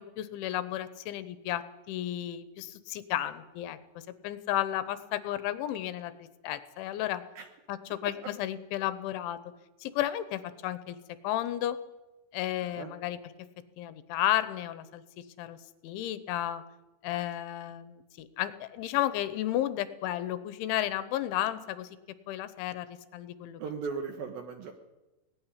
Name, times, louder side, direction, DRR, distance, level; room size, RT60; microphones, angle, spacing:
voice 1, 0.0-3.8 4.2-6.1 6.4-7.2 7.7-9.4 9.8-11.0 11.2-11.8 12.3-13.2 13.8-15.6 15.8-16.6 17.0-22.0 22.3-23.6, left 13 dB, 85° left, 13 dB, 3.3 m, -33 dB
voice 2, 12.6-12.9 23.6-24.7, right 5 dB, 70° right, 7 dB, 2.4 m, -37 dB
18.5 x 15.0 x 9.9 m, 1.1 s
omnidirectional pair, 5.5 m